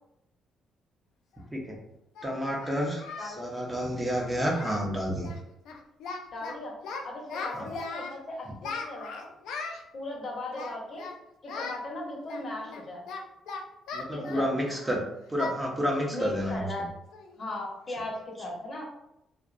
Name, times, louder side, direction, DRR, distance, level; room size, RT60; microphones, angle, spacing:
Singing, 1.3-1.4 2.2-3.4 3.6-3.9 4.2-4.3 4.5-4.9 5.2-5.4 5.7-6.5 6.8-8.2 8.6-9.8 10.5-11.2 11.5-11.8 12.3-14.9 15.4-15.6 15.9-16.1 16.5-16.6 17.1-17.4, left 4 dB, 85° left, 0.3 m, -38 dB
voice 1, 2.2-5.3 7.5-7.6 13.9-16.7, equal, 15° right, -2 dB, 0.6 m, -30 dB
voice 2, 3.2-3.5 6.3-6.8 7.0-9.3 9.9-11.1 11.4-13.1 14.1-14.8 16.1-16.8 17.3-18.8, left 1 dB, 50° left, -2 dB, 0.7 m, -37 dB
2.5 x 2.0 x 2.4 m, 0.81 s
cardioid pair, 90°, 0 cm